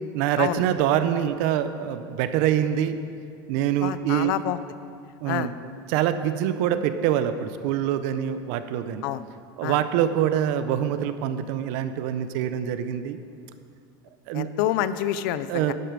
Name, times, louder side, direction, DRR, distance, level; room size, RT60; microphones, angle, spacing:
voice 1, 0.1-3.0 3.5-4.3 5.2-5.5 5.9-9.1 9.6-13.2 14.3-14.5 15.5-15.7, right 10 dB, 55° right, 11 dB, 0.6 m, -25 dB
voice 2, 3.8-4.6 5.3-5.5 9.0-9.2 9.6-9.8 14.3-15.7, left 12 dB, 65° left, 14 dB, 0.5 m, -27 dB
11.0 x 7.8 x 5.1 m, 2.3 s
supercardioid pair, 165°, 12 cm